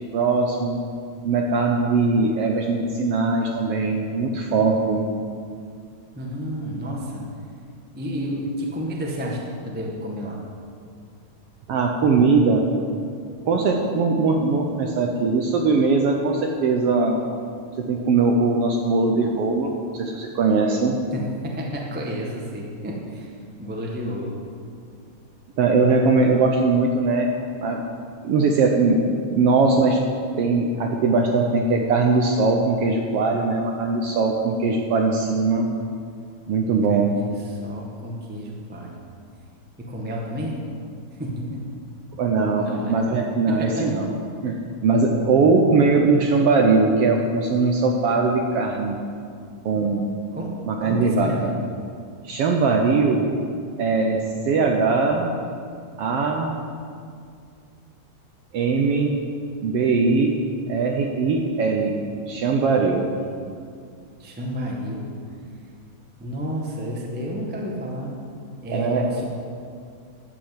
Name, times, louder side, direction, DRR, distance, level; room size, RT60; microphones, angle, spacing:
voice 1, 0.1-0.8 1.2-5.1 11.7-12.6 13.5-17.2 17.9-21.0 25.6-27.3 27.6-27.8 28.2-29.0 29.3-30.0 30.4-35.7 36.5-37.1 42.2-44.1 44.4-44.5 44.8-49.0 49.6-50.0 50.7-51.5 52.2-53.3 53.8-55.3 56.0-56.5 58.5-59.2 59.6-60.4 60.7-61.9 62.3-63.1 68.7-69.1, right 4 dB, 70° right, 2 dB, 1.5 m, -20 dB
voice 2, 6.1-7.2 7.9-10.4 21.1-23.3 23.6-24.4 36.9-38.9 39.8-40.6 41.2-41.8 42.6-43.0 43.5-43.9 50.3-50.5 50.8-51.5 63.2-63.3 64.2-65.1 66.2-68.2 68.6-69.2, equal, 10° right, -2 dB, 0.5 m, -31 dB
13.0 x 6.1 x 7.8 m, 2.3 s
omnidirectional pair, 3.5 m